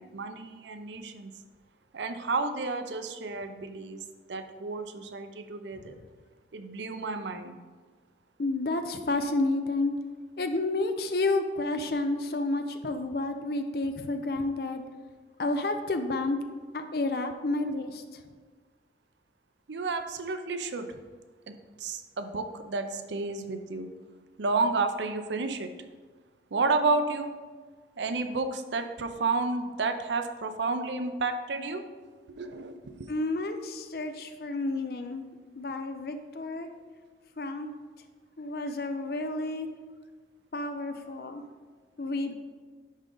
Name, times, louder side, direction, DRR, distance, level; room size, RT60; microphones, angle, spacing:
voice 1, 0.0-1.3 1.9-4.0 4.3-6.0 6.5-7.6 12.8-12.9 19.7-21.0 21.8-23.9 24.4-25.7 26.5-27.3 28.0-31.8 32.3-33.1, right 3 dB, 80° right, 8 dB, 0.6 m, -31 dB
voice 2, 8.4-9.9 10.4-14.8 15.4-16.4 16.7-18.0 33.1-35.2 35.6-36.7 37.4-37.7 38.4-39.7 40.5-41.4 42.0-42.3, left 2 dB, 55° left, 8 dB, 0.5 m, -30 dB
10.5 x 3.8 x 3.8 m, 1.4 s
head